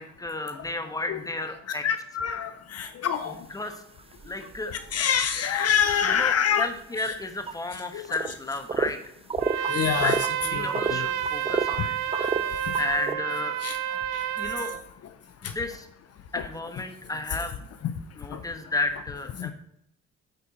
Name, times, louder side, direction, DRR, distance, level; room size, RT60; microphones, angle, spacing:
voice 1, 0.0-1.9 3.3-3.8 4.2-4.7 6.0-9.0 10.0-12.0 12.8-13.6 14.4-14.7 15.4-15.9 16.3-17.6 18.1-19.5, left 2 dB, 10° left, 7 dB, 1.1 m, -32 dB
voice 2, 1.8-3.3 4.9-6.6 7.9-8.0 9.7-10.2 10.6-10.7 12.2-12.3 13.6-13.7, left 8 dB, 55° left, 9 dB, 0.6 m, -25 dB
sound 1, 3.1-3.3 3.7-4.9 5.6-5.9 6.2-6.3 7.5-7.6 8.0-8.4 8.7-8.9 9.3-10.3 10.7-11.9 12.1-13.1, right 5 dB, 20° right, 0.4 m, -29 dB
Trumpet, 9.4-14.8, right 11 dB, 80° right, 0.6 m, -30 dB
8.7 x 4.4 x 4.1 m, 0.78 s
cardioid pair, 90°, 30 cm